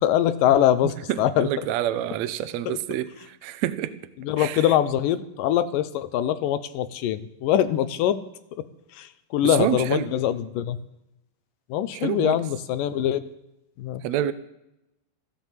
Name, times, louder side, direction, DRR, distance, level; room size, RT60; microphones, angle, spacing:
voice 1, 0.0-1.5 2.7-2.8 4.2-8.2 8.6-8.7 9.0-10.8 11.7-13.2 13.8-14.0, left 11 dB, 75° left, 12 dB, 2.3 m, -23 dB
voice 2, 0.8-3.9 4.4-4.7 9.4-10.1 11.9-12.4 14.0-14.3, right 12 dB, 85° right, 12 dB, 1.5 m, -28 dB
15.0 x 11.5 x 7.5 m, 0.87 s
omnidirectional pair, 4.3 m